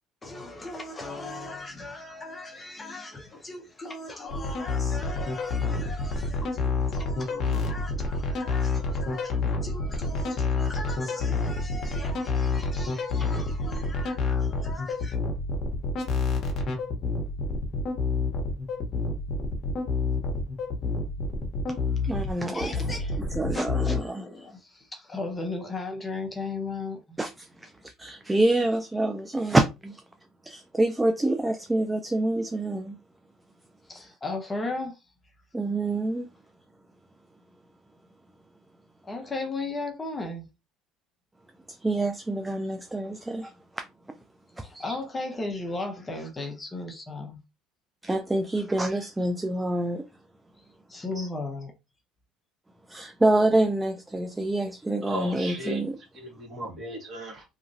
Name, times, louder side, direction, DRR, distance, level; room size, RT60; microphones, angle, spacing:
voice 1, 0.2-15.2 22.4-23.2 23.7-27.2 33.9-35.0 39.0-40.5 44.6-47.4 50.9-51.7, left 2 dB, 20° left, 0.7 m, -37 dB
sound 1, 4.3-24.0, left 4 dB, 50° left, 0.9 m, -28 dB
voice 2, 22.0-22.8 23.3-24.3 27.2-30.0 30.5-33.0 35.5-36.3 41.7-43.8 44.6-45.0 48.0-50.1 51.2-51.3 52.9-56.0, right 2 dB, 10° right, 0.3 m, -27 dB
voice 3, 55.0-55.8 56.1-57.4, equal, 35° right, 1.5 m, -36 dB
2.9 x 2.4 x 2.6 m
cardioid pair, 110°, 0 cm